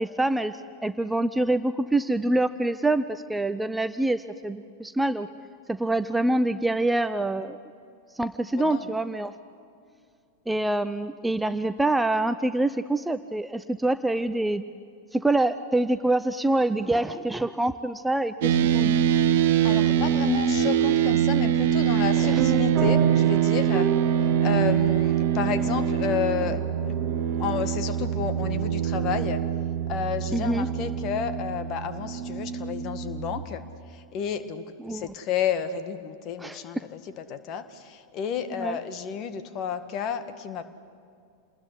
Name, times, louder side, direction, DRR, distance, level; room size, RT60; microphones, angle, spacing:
voice 1, 0.0-5.3 5.7-7.6 8.1-9.3 10.5-14.6 15.1-19.0 22.1-22.4 30.3-30.7 34.8-35.1 36.4-36.8 38.5-38.8, right 2 dB, 5° right, 12 dB, 0.7 m, -26 dB
voice 2, 8.6-8.9 19.6-23.9 24.4-26.6 27.4-29.4 29.9-33.6 34.1-40.6, left 8 dB, 35° left, 10 dB, 1.8 m, -31 dB
sound 1, 18.4-33.5, right 9 dB, 55° right, 1.3 m, -24 dB
sound 2, 22.4-30.5, right 9 dB, 30° right, 2.0 m, -33 dB
28.0 x 20.5 x 9.8 m, 2.4 s
figure-of-eight pair, 90°, 0 cm